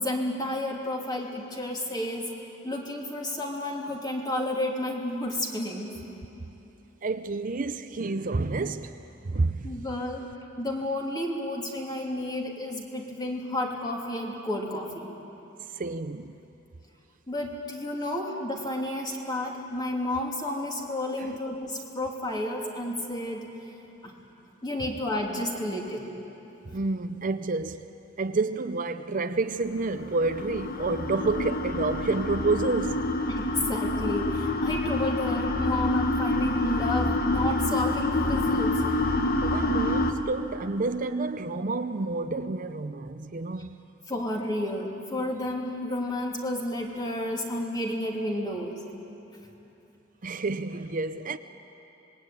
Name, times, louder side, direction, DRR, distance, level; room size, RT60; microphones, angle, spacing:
voice 1, 0.0-2.3 2.6-5.9 9.6-10.2 10.6-15.1 17.3-23.5 24.0-24.1 24.6-26.1 33.3-38.8 44.1-48.8, left 1 dB, 20° left, 3.0 m, -31 dB
voice 2, 7.0-9.9 15.7-16.4 21.2-21.4 26.7-33.1 39.4-43.8 50.2-51.4, right 3 dB, 45° right, 0.6 m, -29 dB
sound 1, 29.8-40.1, left 2 dB, 55° left, 1.4 m, -27 dB
26.0 x 21.0 x 9.2 m
head